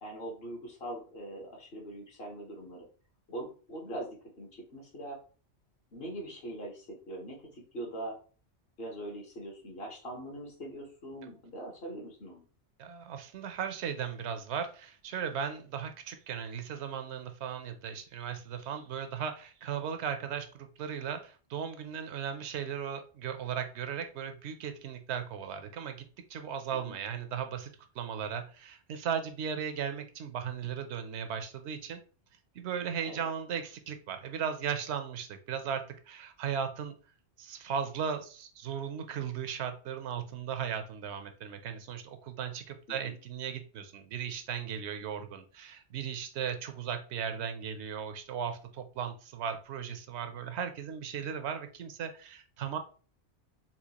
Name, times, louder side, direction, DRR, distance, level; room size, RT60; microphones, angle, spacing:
voice 1, 0.0-2.9 3.3-5.2 5.9-8.2 8.8-12.4 26.7-26.9 33.1-33.3 42.9-43.1, right 1 dB, 60° left, 0 dB, 1.3 m, -42 dB
voice 2, 12.8-26.0 26.3-27.7 28.0-32.0 32.5-36.9 37.4-52.8, right 7 dB, 80° right, 8 dB, 0.8 m, -37 dB
4.3 x 2.3 x 2.8 m, 0.38 s
omnidirectional pair, 1.1 m